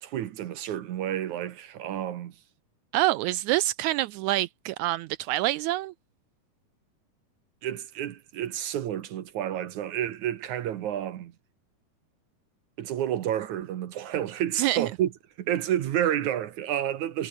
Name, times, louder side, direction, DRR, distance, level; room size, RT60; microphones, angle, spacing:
voice 1, 0.0-2.3 7.6-11.3 12.8-15.1 15.4-17.3, right 11 dB, 65° right, 2.4 m, -30 dB
voice 2, 2.9-5.9 14.6-14.9, right 16 dB, 85° right, 1.7 m, -26 dB
omnidirectional pair, 3.9 m